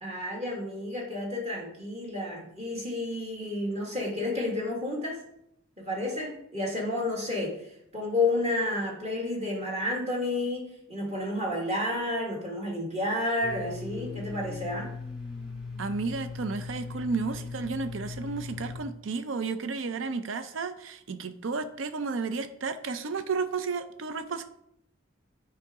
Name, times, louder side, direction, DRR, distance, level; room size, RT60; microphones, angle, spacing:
voice 1, 0.0-5.2 5.8-7.6 7.9-14.9, left 2 dB, 35° right, -2 dB, 1.8 m, -31 dB
Domestic sounds home sounds, 13.4-18.8, left 4 dB, 5° right, 1.4 m, -39 dB
voice 2, 15.8-24.4, right 4 dB, 75° right, 10 dB, 0.5 m, -32 dB
9.5 x 4.9 x 3.6 m, 0.75 s
head